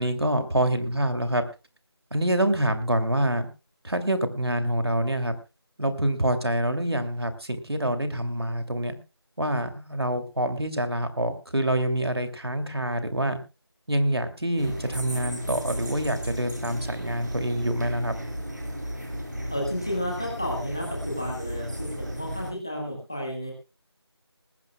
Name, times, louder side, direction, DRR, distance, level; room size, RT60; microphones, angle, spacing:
voice 1, 0.0-1.4 2.1-3.5 3.8-5.4 5.8-9.0 9.4-13.4 13.9-18.1, right 1 dB, 70° right, 8 dB, 2.7 m, -26 dB
sound 1, 14.6-22.5, equal, 45° right, 4.0 m, -34 dB
voice 2, 19.5-23.5, equal, 10° left, 0 dB, 1.4 m, -32 dB
20.0 x 15.5 x 2.3 m, 0.28 s
figure-of-eight pair, 180°, 14 cm